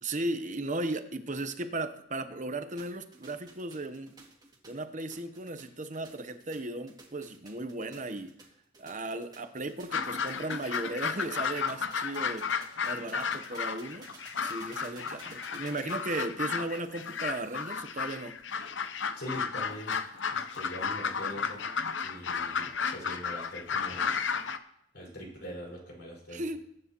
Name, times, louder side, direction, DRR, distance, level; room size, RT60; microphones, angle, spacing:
voice 1, 0.0-4.1 4.7-8.3 8.8-12.5 12.8-14.1 14.4-18.3 26.3-26.6, right 2 dB, 40° right, 9 dB, 1.0 m, -36 dB
sound 1, 2.8-17.8, right 3 dB, 20° right, 2.3 m, -55 dB
sound 2, 9.9-24.6, left 6 dB, 80° left, 0.8 m, -33 dB
voice 2, 19.2-20.0 20.3-21.6 22.0-24.2 24.9-26.6, equal, 65° left, -3 dB, 5.3 m, -43 dB
22.0 x 9.9 x 3.0 m, 0.77 s
head